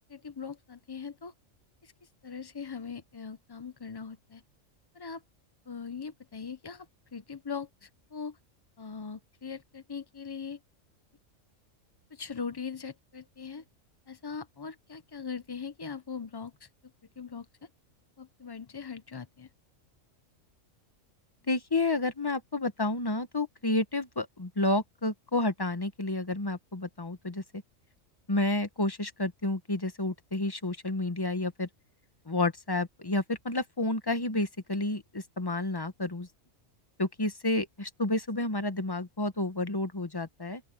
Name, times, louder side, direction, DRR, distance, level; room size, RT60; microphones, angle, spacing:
voice 1, 0.1-1.3 1.8-1.9 2.2-4.4 4.9-5.2 5.7-6.9 7.1-8.4 8.8-10.6 12.1-13.6 14.1-16.7 17.2-17.5 18.2-19.5, left 6 dB, 40° left, 0.3 m, -40 dB
voice 2, 21.5-27.6 28.3-31.7 32.3-36.3 37.0-40.6, left 2 dB, 20° left, 1.0 m, -30 dB
open air
omnidirectional pair, 1.4 m